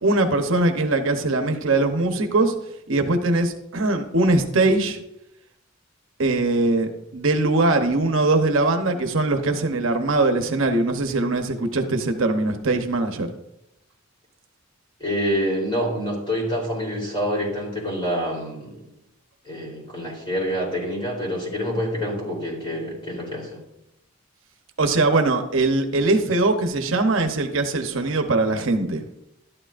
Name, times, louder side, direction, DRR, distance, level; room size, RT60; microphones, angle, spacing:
voice 1, 0.0-2.5 2.9-5.0 6.2-13.3 24.8-29.0, right 2 dB, 65° right, 6 dB, 0.9 m, -21 dB
voice 2, 15.0-18.8 19.5-23.6, equal, 25° left, -3 dB, 3.5 m, -27 dB
12.0 x 11.0 x 2.5 m, 0.83 s
head